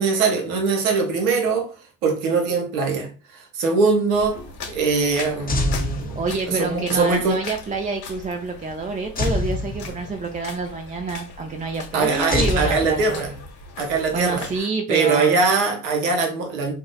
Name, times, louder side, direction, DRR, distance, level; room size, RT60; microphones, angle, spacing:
voice 1, 0.0-1.7 2.0-4.4 4.7-6.2 6.5-7.4 11.9-13.3 13.8-14.5 14.9-16.7, right 4 dB, 85° right, 4 dB, 0.8 m, -22 dB
sound 1, 4.1-14.6, left 3 dB, 65° left, 1.1 m, -39 dB
sound 2, 5.5-6.7 9.2-10.4 12.3-13.6, left 2 dB, 20° left, 0.7 m, -26 dB
voice 2, 6.1-13.2 14.1-15.4, right 3 dB, 20° right, 3 dB, 0.5 m, -28 dB
2.6 x 2.0 x 3.9 m, 0.37 s
hypercardioid pair, 60°, 40 cm